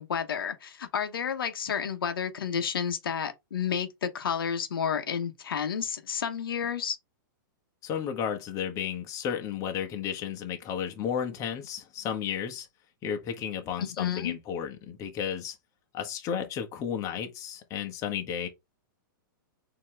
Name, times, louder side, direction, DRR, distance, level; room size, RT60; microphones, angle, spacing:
voice 1, 0.0-7.0 13.8-14.4, left 7 dB, 90° left, 0.9 m, -31 dB
voice 2, 7.8-12.7 13.0-15.5 15.9-18.5, left 8 dB, 30° left, 1.1 m, -33 dB
4.4 x 2.9 x 3.2 m
hypercardioid pair, 140°, 12 cm